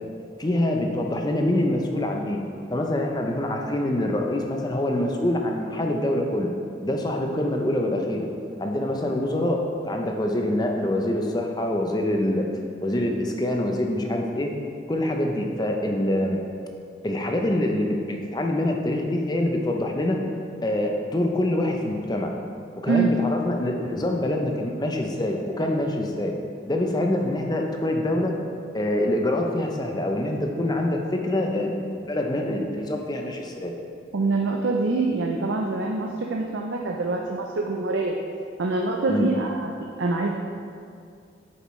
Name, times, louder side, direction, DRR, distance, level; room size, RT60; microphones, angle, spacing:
voice 1, 0.4-2.4 2.7-6.5 6.8-8.3 8.6-12.5 12.8-14.5 14.9-16.4 17.0-20.2 20.6-22.3 22.8-26.3 26.7-28.3 28.7-33.7 39.1-39.3, left 1 dB, 20° left, 2 dB, 0.6 m, -25 dB
voice 2, 34.1-38.2 38.6-40.3, right 3 dB, 85° right, 0 dB, 0.6 m, -25 dB
8.9 x 6.9 x 3.2 m, 2.4 s
head